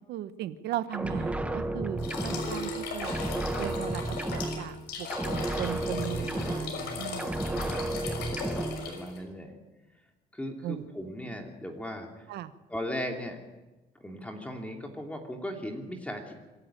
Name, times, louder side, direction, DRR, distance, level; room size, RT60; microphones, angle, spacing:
voice 1, 0.1-3.2 3.6-7.3 10.6-10.9 12.3-12.5, right 12 dB, 80° right, 12 dB, 1.1 m, -37 dB
sound 1, 0.9-2.8 3.0-4.8 5.1-6.9 7.2-8.9, right 1 dB, 5° right, 1.3 m, -32 dB
sound 2, 2.0-9.2, left 4 dB, 80° left, 5.7 m, -38 dB
voice 2, 6.8-9.6 10.3-12.3 12.7-13.4 13.9-16.3, left 1 dB, 10° left, 2 dB, 2.8 m, -38 dB
25.5 x 12.0 x 9.0 m, 1.1 s
cardioid pair, 110°, 17 cm